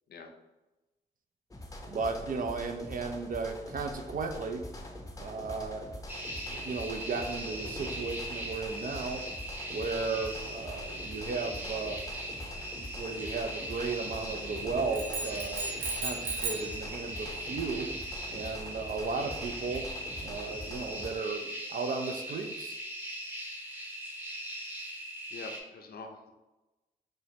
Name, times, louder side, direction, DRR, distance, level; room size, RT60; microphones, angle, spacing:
sound 1, 1.5-21.1, left 1 dB, 20° left, 0.7 m, -44 dB
voice 1, 1.9-4.6 5.2-5.9 6.5-9.2 9.7-12.0 12.8-17.9 18.3-19.9 20.2-22.8, right 4 dB, 50° right, 5 dB, 0.5 m, -35 dB
sound 2, 6.1-25.6, right 1 dB, 10° right, 0.9 m, -40 dB
sound 3, 14.9-16.8, right 3 dB, 85° right, 0.7 m, -35 dB
voice 2, 25.3-26.3, left 3 dB, 55° left, 4 dB, 0.6 m, -45 dB
4.4 x 2.1 x 2.8 m, 1.0 s
supercardioid pair, 45°, 19 cm